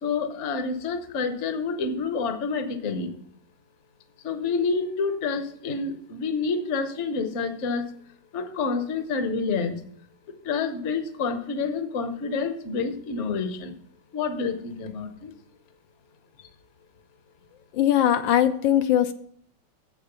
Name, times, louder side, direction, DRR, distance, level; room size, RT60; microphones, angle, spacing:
voice 1, 0.0-3.1 4.2-7.9 8.3-9.8 10.4-13.7 14.1-15.3 16.4-16.5, left 4 dB, 50° left, 8 dB, 1.0 m, -28 dB
voice 2, 17.7-19.1, left 11 dB, 80° left, 9 dB, 1.3 m, -20 dB
7.4 x 6.7 x 6.7 m, 0.65 s
omnidirectional pair, 2.2 m